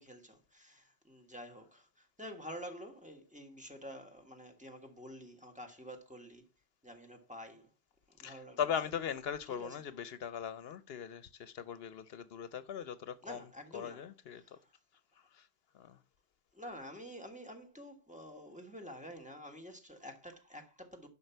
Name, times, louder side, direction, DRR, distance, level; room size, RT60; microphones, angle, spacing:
voice 1, 0.0-6.4 6.8-7.7 8.1-8.6 9.5-9.8 13.2-14.1 14.3-14.7 16.5-21.1, equal, 5° right, 1.5 m, -49 dB
voice 2, 8.2-13.4 13.7-14.6 15.3-15.5 15.7-16.0, left 8 dB, 70° left, 0.8 m, -39 dB
11.0 x 5.8 x 4.5 m
omnidirectional pair, 1.1 m